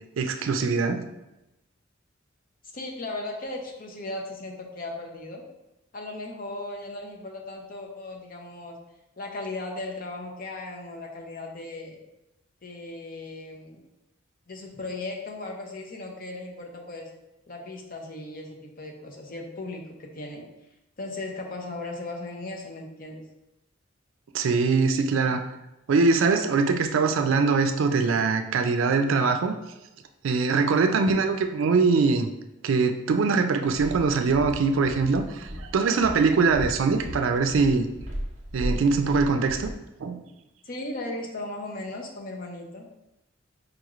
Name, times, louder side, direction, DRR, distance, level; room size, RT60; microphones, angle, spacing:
voice 1, 0.2-1.1 24.3-25.4 25.9-29.5 30.2-32.3 32.6-37.9 38.5-39.7 40.0-40.2, right 4 dB, 80° right, 7 dB, 0.4 m, -22 dB
voice 2, 2.7-5.5 5.9-8.8 9.2-12.0 12.6-13.8 14.5-17.1 17.5-20.4 21.0-23.3 30.9-31.2 40.6-42.9, left 2 dB, 45° left, 1 dB, 0.6 m, -37 dB
Walk footsteps, 33.7-39.8, equal, 40° right, 0.6 m, -36 dB
4.8 x 3.0 x 2.4 m, 0.92 s
head